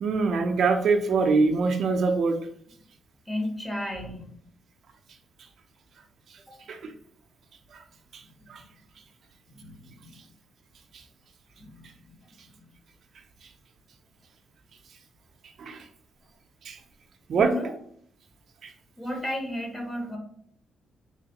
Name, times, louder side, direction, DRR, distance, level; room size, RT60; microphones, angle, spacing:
voice 1, 0.0-2.4 6.7-6.9 7.7-7.8 8.1-8.2 8.5-8.6 15.6-15.8 16.6-16.8 17.3-17.5 18.6-18.7, right 4 dB, 60° right, 5 dB, 0.5 m, -24 dB
voice 2, 3.3-4.4 6.5-6.6 8.4-8.5 9.5-10.2 11.6-12.2 12.6-12.7 17.3-17.7 19.0-20.2, left 1 dB, 20° left, 2 dB, 1.0 m, -34 dB
3.5 x 3.2 x 2.8 m, 0.63 s
cardioid pair, 110°, 0 cm